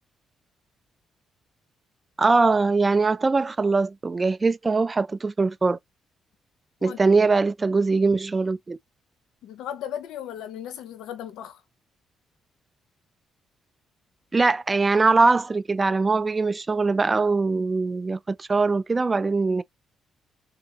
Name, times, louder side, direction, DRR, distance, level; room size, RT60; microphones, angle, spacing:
voice 1, 2.2-5.8 6.8-8.8 14.3-19.6, right 3 dB, 25° right, 0.3 m, -22 dB
voice 2, 9.4-11.6, left 10 dB, 85° left, 0.6 m, -36 dB
3.7 x 2.8 x 2.7 m
cardioid pair, 90°, 0 cm